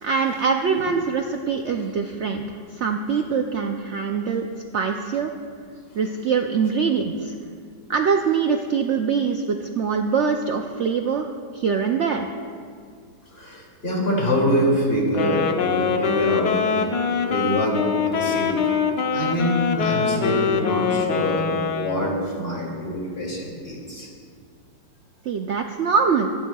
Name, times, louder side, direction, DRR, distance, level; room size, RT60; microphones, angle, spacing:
voice 1, 0.0-4.5 4.7-5.3 6.0-7.3 7.9-12.3 25.2-26.3, right 6 dB, 80° right, 4 dB, 0.6 m, -23 dB
voice 2, 13.3-16.5 17.2-18.5 19.1-24.1, equal, 35° left, -3 dB, 2.8 m, -25 dB
Wind instrument woodwind instrument, 15.1-22.3, left 6 dB, 75° left, 1.3 m, -24 dB
25.0 x 10.0 x 2.3 m, 2.2 s
omnidirectional pair, 1.9 m